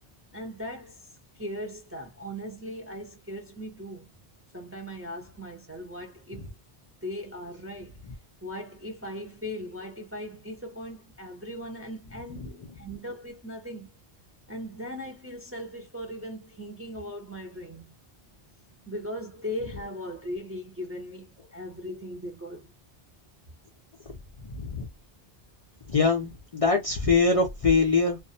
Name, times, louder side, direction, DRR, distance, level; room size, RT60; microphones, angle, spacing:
voice 1, 0.3-1.1 1.3-4.1 4.5-6.6 7.0-8.0 8.4-13.9 14.5-17.9 18.9-22.7, equal, 20° right, 0.4 m, -38 dB
voice 2, 24.5-24.9 25.9-28.2, left 4 dB, 50° left, 0.4 m, -23 dB
2.3 x 2.0 x 2.6 m
omnidirectional pair, 1.0 m